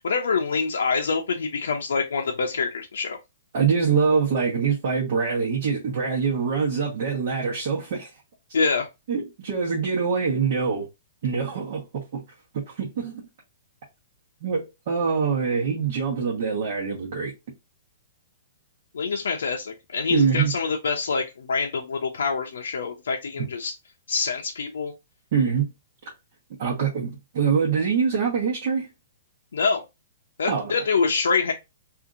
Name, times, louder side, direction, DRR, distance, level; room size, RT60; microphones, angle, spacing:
voice 1, 0.0-3.2 8.5-8.9 18.9-23.7 24.1-24.9 29.5-29.8 30.4-31.5, left 5 dB, 90° left, 0.5 m, -25 dB
voice 2, 3.5-8.1 9.1-10.9 11.2-12.2 12.5-13.3 14.4-17.3 20.1-20.5 23.4-23.5 25.3-25.7 26.6-28.9 30.5-30.7, right 6 dB, 55° right, 1.1 m, -24 dB
2.8 x 2.5 x 2.5 m
hypercardioid pair, 155°, 0 cm